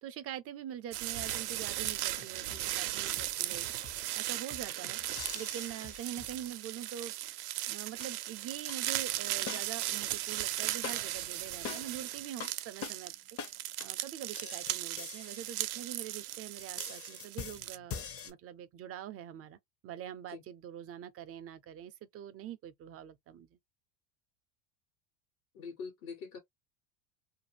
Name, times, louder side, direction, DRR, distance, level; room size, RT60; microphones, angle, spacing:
voice 1, 0.0-3.7 4.1-5.0 5.3-7.1 7.7-13.1 13.8-19.6 19.8-23.6, right 10 dB, 35° right, 0.4 m, -44 dB
sound 1, 0.9-17.8, right 15 dB, 85° right, 0.5 m, -37 dB
sound 2, 1.2-6.5, left 6 dB, 55° left, 1.1 m, -54 dB
sound 3, 3.2-3.5 5.2-6.4 8.0-8.1 8.7-8.8 9.5-10.0 10.8-11.2 11.6-12.0 12.4-12.5 12.8-13.0 13.4-13.5 13.8-13.9 14.3-16.2 16.6-18.3, left 6 dB, 35° left, 0.6 m, -44 dB
voice 2, 25.5-26.4, left 5 dB, 75° left, 1.2 m, -43 dB
2.5 x 2.5 x 2.7 m
supercardioid pair, 100°, 44 cm